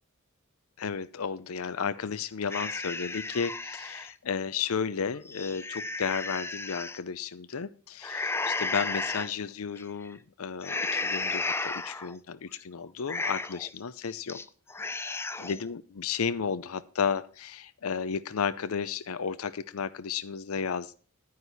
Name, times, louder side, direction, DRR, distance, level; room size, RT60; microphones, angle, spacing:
voice 1, 0.8-14.4 15.4-20.9, left 6 dB, 85° left, 14 dB, 0.6 m, -33 dB
sound 1, 2.5-4.1 4.6-4.7 5.2-7.0 8.0-9.3 9.8-10.1 10.6-12.1 12.5-12.6 13.0-13.7 14.1-14.4 14.7-15.6, left 3 dB, 10° left, 0.4 m, -33 dB
9.9 x 9.5 x 4.1 m, 0.38 s
head